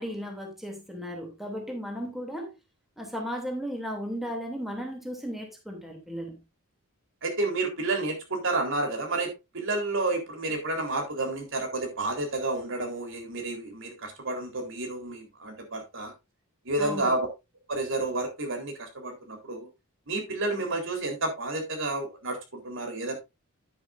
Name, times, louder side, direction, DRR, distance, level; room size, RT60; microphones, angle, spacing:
voice 1, 0.0-2.5 3.0-6.4 16.8-17.1, equal, ahead, 2.7 m, -35 dB
voice 2, 7.2-16.1 16.7-17.3 17.7-19.7 20.1-23.2, right 2 dB, 60° right, 3.8 m, -30 dB
10.5 x 10.0 x 2.6 m
head